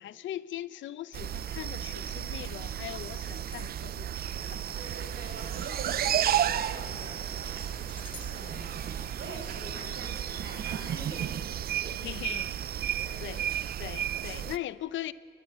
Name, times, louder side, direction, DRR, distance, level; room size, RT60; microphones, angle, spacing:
voice 1, 0.0-4.6 12.0-12.5 13.2-13.5 13.8-15.1, left 13 dB, 70° left, 0.7 m, -40 dB
such a strange sounding bird, 1.1-14.6, right 11 dB, 50° right, 0.5 m, -33 dB
sound 1, 3.5-4.2 7.6-9.8, left 3 dB, 25° left, 1.9 m, -53 dB
sound 2, 4.3-10.0, right 2 dB, 35° right, 3.6 m, -49 dB
voice 2, 4.8-7.6 8.3-8.9 9.2-11.5 11.8-12.0 13.0-13.2 14.1-14.5, right 2 dB, 65° right, 7.0 m, -45 dB
29.5 x 11.0 x 9.7 m
cardioid pair, 90°, 20 cm